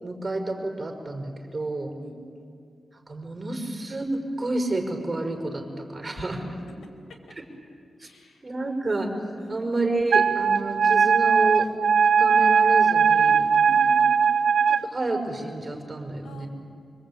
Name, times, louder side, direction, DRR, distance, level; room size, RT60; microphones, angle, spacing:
voice 1, 0.0-1.9 3.1-5.7 5.9-6.5 8.4-9.1 9.5-11.7 12.2-13.5 14.8-16.5, right 2 dB, 30° right, 3 dB, 5.4 m, -29 dB
voice 2, 2.0-2.3 6.1-6.3 8.0-8.4 9.4-9.8 13.5-14.5 16.2-16.5, equal, 85° left, 3 dB, 5.0 m, -44 dB
Wind instrument woodwind instrument, 10.1-14.8, right 6 dB, 90° right, 0.7 m, -19 dB
26.0 x 25.0 x 8.8 m, 2.3 s
cardioid pair, 85°, 0 cm